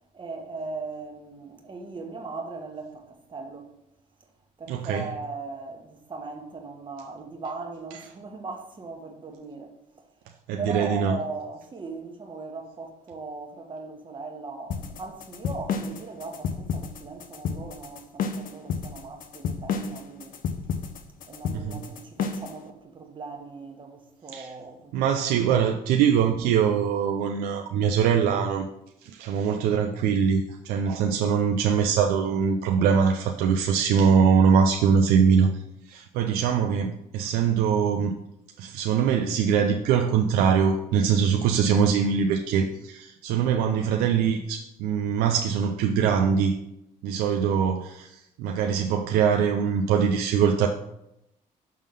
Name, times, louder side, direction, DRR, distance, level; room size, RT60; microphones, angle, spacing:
voice 1, 0.1-3.7 4.6-9.7 10.6-20.3 21.2-25.2 25.5-25.6, right 3 dB, 30° right, 1.3 m, -38 dB
voice 2, 4.7-5.1 10.5-11.2 21.5-21.8 24.3-24.5 24.9-28.7 29.0-35.6 35.9-38.1 38.6-46.5 47.0-50.7, right 7 dB, 85° right, 0.5 m, -23 dB
sound 1, 14.7-22.6, left 6 dB, 65° left, 0.7 m, -31 dB
6.5 x 3.7 x 5.4 m
cardioid pair, 85°, 15 cm